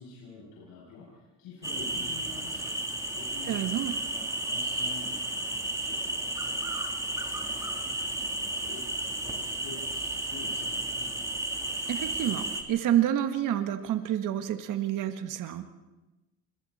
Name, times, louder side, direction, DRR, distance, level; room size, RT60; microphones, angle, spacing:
voice 1, 0.0-11.2, left 3 dB, 75° left, -5 dB, 7.4 m, -48 dB
sound 1, 1.6-12.6, right 1 dB, 10° right, 3.4 m, -33 dB
voice 2, 3.5-3.9 11.9-15.6, right 11 dB, 60° right, 8 dB, 1.7 m, -28 dB
28.5 x 22.5 x 4.3 m, 1.1 s
supercardioid pair, 85°, 36 cm